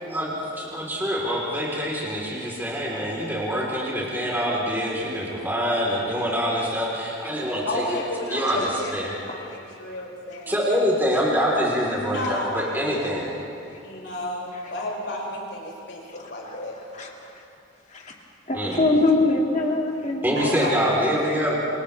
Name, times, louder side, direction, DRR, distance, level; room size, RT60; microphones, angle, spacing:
voice 1, 0.1-7.8 8.3-9.1 10.5-13.4 18.5-18.8 20.2-21.6, equal, 10° right, -5 dB, 3.8 m, -25 dB
voice 2, 7.7-10.6 12.1-12.7 13.8-16.7 20.3-21.4, left 1 dB, 65° left, -3 dB, 6.0 m, -32 dB
voice 3, 16.9-17.4 17.9-18.2 18.5-20.3, left 2 dB, 35° left, 0 dB, 2.3 m, -23 dB
29.0 x 28.5 x 3.4 m, 2.7 s
head